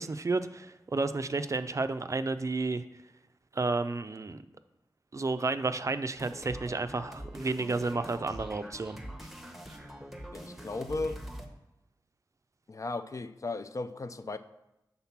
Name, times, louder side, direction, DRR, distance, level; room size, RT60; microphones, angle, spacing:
voice 1, 0.0-2.8 3.5-4.4 5.1-9.0 9.7-9.9, right 3 dB, 45° right, 10 dB, 0.4 m, -31 dB
sound 1, 6.1-11.5, equal, 5° right, 0.9 m, -44 dB
voice 2, 10.3-11.2 12.7-14.4, left 3 dB, 45° left, 11 dB, 0.4 m, -36 dB
5.7 x 3.7 x 5.8 m, 0.93 s
cardioid pair, 45°, 8 cm